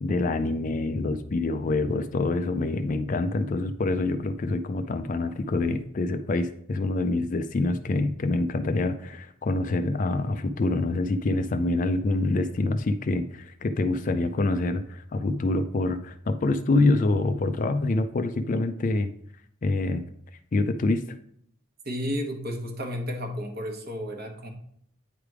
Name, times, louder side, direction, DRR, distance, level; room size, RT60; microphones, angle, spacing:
voice 1, 0.0-19.1 19.6-20.0 20.5-21.0, left 2 dB, 35° left, 10 dB, 0.3 m, -26 dB
voice 2, 21.8-24.5, equal, 45° right, 3 dB, 1.0 m, -32 dB
9.1 x 3.4 x 4.8 m, 0.67 s
head